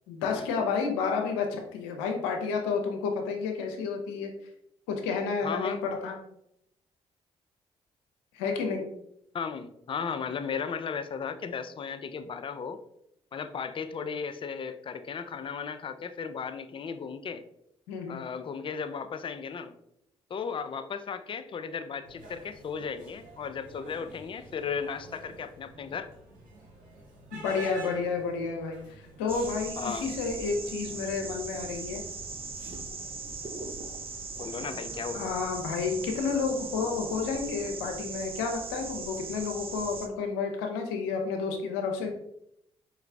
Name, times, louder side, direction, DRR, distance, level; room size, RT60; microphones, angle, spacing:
voice 1, 0.1-4.3 4.9-6.2 8.3-8.9 17.9-18.2 27.3-32.0 35.1-42.1, left 5 dB, 90° left, 3 dB, 0.6 m, -31 dB
voice 2, 5.4-5.8 9.3-12.8 13.3-17.4 18.1-19.7 20.3-26.1 29.8-30.1 34.4-35.2, left 6 dB, 40° left, 9 dB, 0.4 m, -35 dB
sound 1, 22.0-36.0, right 2 dB, 70° right, 1.2 m, -50 dB
sound 2, 29.3-40.1, right 4 dB, 40° right, 0.6 m, -39 dB
4.7 x 2.3 x 3.3 m, 0.77 s
hypercardioid pair, 50°, 14 cm